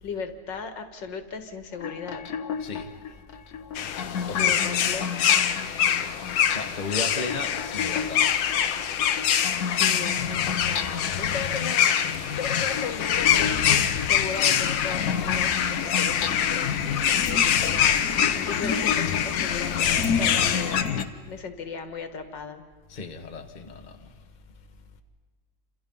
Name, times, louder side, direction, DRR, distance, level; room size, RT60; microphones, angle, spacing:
voice 1, 0.0-2.3 4.3-5.3 9.7-20.8 21.3-22.6, left 5 dB, 75° left, 2.3 m, -37 dB
sound 1, 1.7-21.1, left 6 dB, 60° left, 1.5 m, -31 dB
sound 2, 3.7-20.8, left 9 dB, 90° left, 1.7 m, -25 dB
voice 2, 4.3-4.8 6.5-8.3 22.9-24.1, left 3 dB, 25° left, 1.4 m, -35 dB
28.5 x 27.0 x 5.5 m
omnidirectional pair, 2.0 m